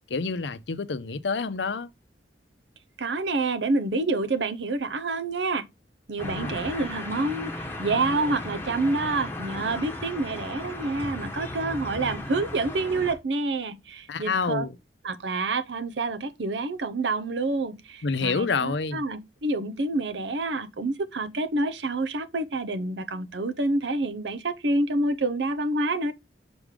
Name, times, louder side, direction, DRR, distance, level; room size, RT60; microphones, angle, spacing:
voice 1, 0.1-1.9 6.2-6.6 14.1-14.8 18.0-19.0, left 4 dB, 85° left, 0.6 m, -28 dB
voice 2, 3.0-5.7 6.1-14.7 15.0-26.1, right 2 dB, 85° right, 0.7 m, -28 dB
sound 1, 6.2-13.2, left 1 dB, 15° left, 1.2 m, -36 dB
6.1 x 4.9 x 3.7 m
head